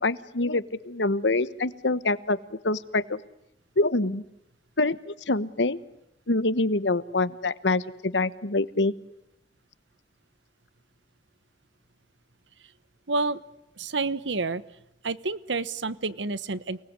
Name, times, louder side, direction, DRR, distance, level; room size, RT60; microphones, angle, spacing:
voice 1, 0.0-2.4 2.6-3.2 3.8-4.2 4.8-5.8 6.3-8.9, left 2 dB, 80° left, 16 dB, 1.2 m, -25 dB
voice 2, 13.1-13.4 13.8-14.6 15.0-16.8, right 3 dB, 90° right, 16 dB, 1.2 m, -29 dB
29.5 x 20.0 x 9.7 m, 0.86 s
head